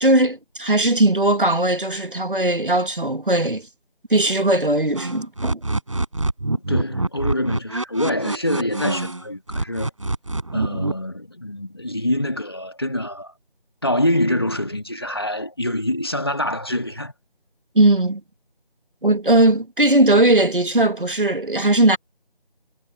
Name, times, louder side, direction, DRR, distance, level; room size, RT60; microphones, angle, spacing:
voice 1, 0.0-3.7 4.1-5.6 17.8-18.2 19.0-22.0, right 1 dB, 60° right, 1.9 m, -18 dB
sound 1, 4.9-9.2 9.5-10.9, right 2 dB, 35° right, 6.6 m, -25 dB
voice 2, 6.7-9.9 10.5-13.3 13.8-17.1, left 1 dB, 25° left, 1.7 m, -25 dB
figure-of-eight pair, 170°, 29 cm